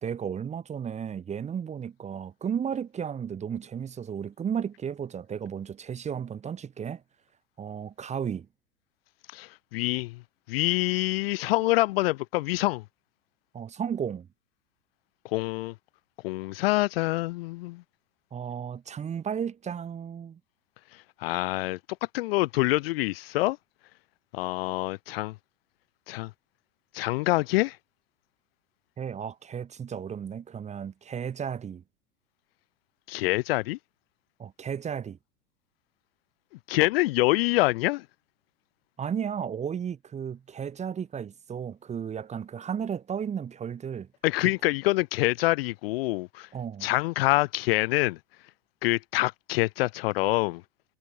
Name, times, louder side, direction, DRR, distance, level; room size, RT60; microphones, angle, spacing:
voice 1, 0.0-7.0 7.6-8.5 13.5-14.3 18.3-20.4 29.0-31.8 34.4-35.2 39.0-44.1 44.4-44.5 46.5-46.9, right 7 dB, 15° right, 1.1 m, -34 dB
voice 2, 9.3-10.2 10.5-12.8 15.3-15.7 16.2-17.8 21.2-21.8 22.1-23.6 24.3-25.3 26.1-26.3 26.9-27.8 33.1-33.8 36.7-38.0 44.2-46.5 46.8-48.2 48.8-50.6, left 20 dB, 45° left, 0.7 m, -26 dB
figure-of-eight pair, 95°, 44 cm